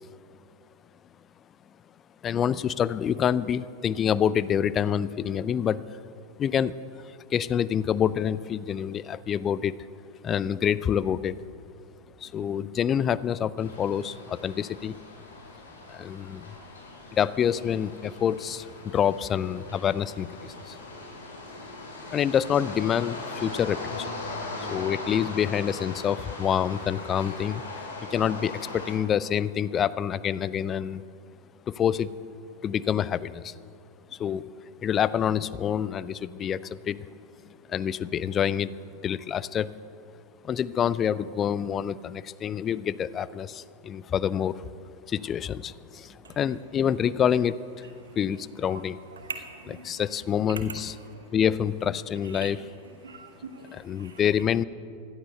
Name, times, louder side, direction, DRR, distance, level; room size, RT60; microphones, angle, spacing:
voice 1, 2.2-5.8 6.4-6.7 7.0-9.7 10.2-11.4 12.2-15.0 15.9-16.5 17.1-20.8 22.1-24.1 24.6-27.6 28.1-31.0 31.7-32.1 32.6-33.5 34.1-34.5 34.8-37.1 37.7-38.8 39.0-39.7 40.4-44.7 45.1-49.0 49.8-50.9 51.3-52.6 53.7-54.6, left 8 dB, 25° left, 18 dB, 0.4 m, -27 dB
sound 1, 13.6-28.9, left 2 dB, 70° left, 4.8 m, -40 dB
voice 2, 49.2-49.9 50.6-51.3 52.3-52.5 53.0-54.2, right 5 dB, 70° right, 6 dB, 1.8 m, -42 dB
16.0 x 11.0 x 8.0 m, 2.5 s
figure-of-eight pair, 90°, 0 cm